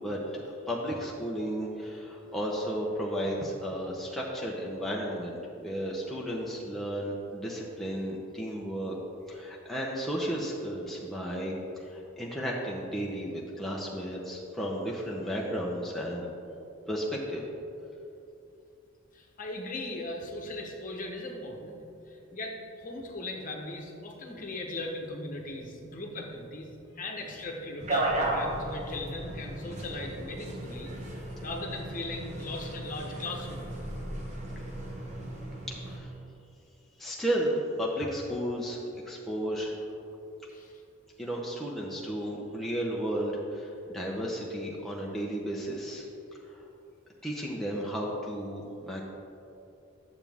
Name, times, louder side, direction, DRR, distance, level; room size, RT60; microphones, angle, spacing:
voice 1, 0.0-8.9 9.3-11.6 11.9-16.3 16.9-17.4 35.9-36.1 37.0-38.8 39.1-39.8 41.2-43.7 43.9-46.0 47.2-49.0, equal, ahead, -4 dB, 0.8 m, -33 dB
voice 2, 19.1-21.7 22.1-26.7 26.9-30.9 31.4-33.8 40.5-40.8, left 2 dB, 40° left, 0 dB, 1.1 m, -38 dB
sound 1, 27.8-36.0, right 1 dB, 35° right, 1.1 m, -35 dB
11.5 x 7.2 x 3.5 m, 2.8 s
head